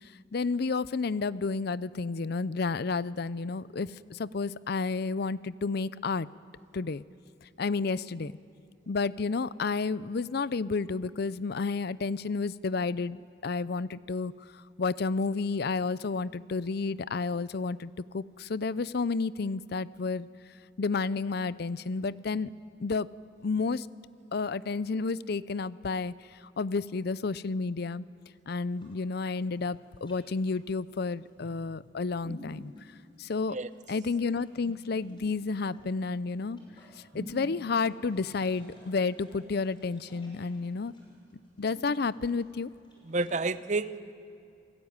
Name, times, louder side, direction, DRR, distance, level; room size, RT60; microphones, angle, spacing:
voice 1, 0.0-6.3 6.7-7.0 7.4-8.3 8.9-20.3 20.8-22.5 22.8-23.1 23.4-23.9 24.3-28.0 28.5-32.7 33.2-33.6 33.9-36.6 37.1-40.9 41.6-42.7, left 4 dB, 55° left, 18 dB, 0.5 m, -31 dB
sound 1, 28.7-43.4, left 1 dB, 25° left, 6.0 m, -52 dB
voice 2, 43.1-44.1, right 3 dB, 35° right, 13 dB, 0.7 m, -30 dB
28.5 x 17.0 x 9.6 m, 2.5 s
head